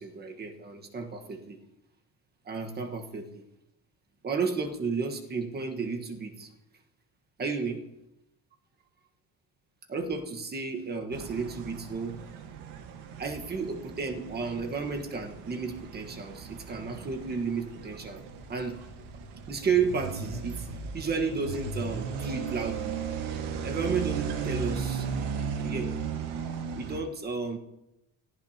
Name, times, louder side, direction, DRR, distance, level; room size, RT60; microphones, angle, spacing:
voice 1, 0.0-1.6 2.4-3.4 4.2-6.5 7.4-7.8 9.9-12.2 13.2-18.2 18.5-18.8 19.5-20.7 20.9-23.0 23.2-25.9 26.7-27.6, right 5 dB, 25° right, 4 dB, 1.4 m, -32 dB
sound 1, 11.1-27.0, right 6 dB, 65° right, 1.5 m, -36 dB
25.5 x 15.0 x 2.9 m, 0.88 s
cardioid pair, 170°, 42 cm